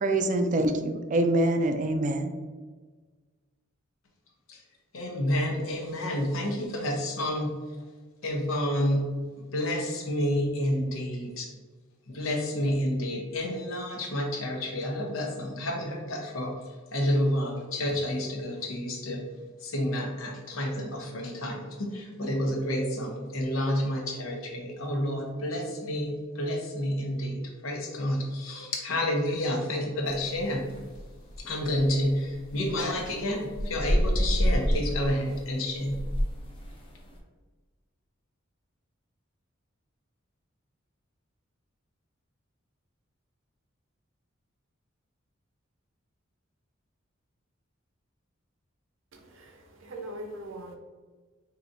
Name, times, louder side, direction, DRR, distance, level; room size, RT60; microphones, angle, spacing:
voice 1, 0.0-2.3, right 1 dB, 40° right, 7 dB, 0.3 m, -25 dB
voice 2, 4.9-7.6 8.2-11.5 12.1-16.5 16.9-19.2 19.6-30.6 31.4-36.0, left 1 dB, 85° left, 1 dB, 0.9 m, -29 dB
sound 1, 30.1-37.2, equal, 25° left, 0.6 m, -30 dB
voice 3, 49.1-50.8, right 1 dB, 70° right, 2 dB, 0.7 m, -41 dB
4.7 x 2.8 x 2.6 m, 1.4 s
head